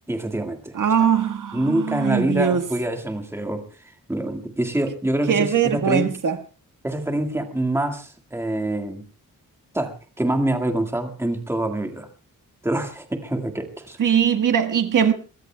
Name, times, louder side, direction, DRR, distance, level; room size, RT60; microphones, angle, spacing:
voice 1, 0.1-1.1 1.5-3.6 4.1-6.1 6.8-9.0 9.7-12.1 12.6-14.0, right 1 dB, 10° right, 1.8 m, -26 dB
voice 2, 0.7-2.6 5.3-6.4 14.0-15.1, right 8 dB, 70° right, 1.5 m, -20 dB
23.5 x 21.5 x 2.3 m
wide cardioid pair, 175°, 32 cm